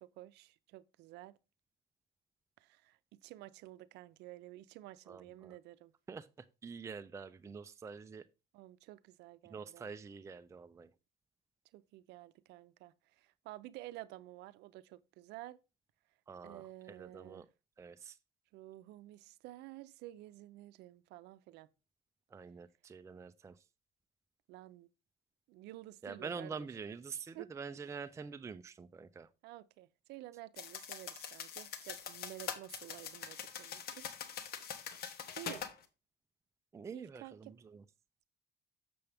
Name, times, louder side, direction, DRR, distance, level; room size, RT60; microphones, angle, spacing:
voice 1, 0.0-1.4 2.6-5.9 8.5-9.9 11.7-15.6 16.4-17.5 18.5-21.7 24.5-24.9 25.5-26.8 27.3-27.5 29.4-34.1 34.6-34.8 35.4-35.7 36.9-37.6, right 16 dB, 85° right, 0.5 m, -51 dB
voice 2, 5.1-5.5 6.1-6.3 6.6-8.2 9.5-10.9 16.3-16.6 17.0-17.4 17.8-18.1 22.3-23.5 26.0-29.3 36.7-37.5, right 5 dB, 15° right, 0.4 m, -46 dB
sound 1, 30.6-35.7, left 8 dB, 65° left, 1.1 m, -44 dB
6.9 x 6.9 x 3.4 m
cardioid pair, 110°, 17 cm